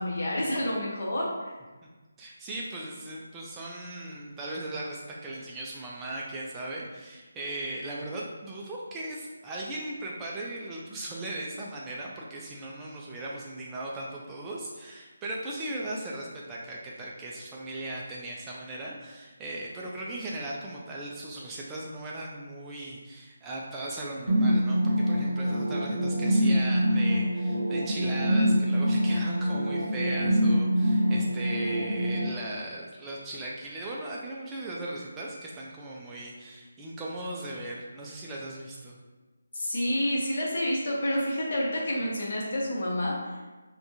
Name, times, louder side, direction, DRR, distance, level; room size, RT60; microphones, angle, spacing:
voice 1, 0.0-1.5 39.5-43.4, equal, 50° left, -4 dB, 0.9 m, -29 dB
voice 2, 2.2-39.0, right 1 dB, 15° right, -4 dB, 0.3 m, -38 dB
sound 1, 24.3-32.3, equal, 85° right, 0.8 m, -25 dB
3.4 x 2.2 x 2.7 m, 1.2 s
figure-of-eight pair, 155°, 0 cm